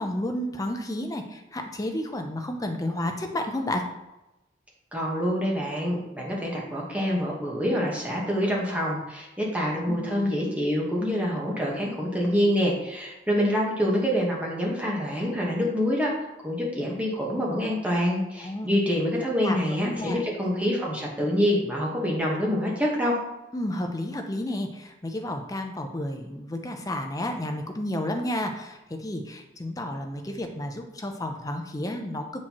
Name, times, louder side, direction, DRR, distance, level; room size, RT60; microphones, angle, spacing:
voice 1, 0.0-3.9 9.9-10.0 18.4-18.7 19.3-19.6 19.8-20.2 23.5-32.3, left 1 dB, 20° left, 4 dB, 0.5 m, -31 dB
voice 2, 4.9-16.1 16.4-23.2, equal, 10° right, -3 dB, 1.2 m, -26 dB
7.4 x 4.5 x 2.9 m, 0.97 s
head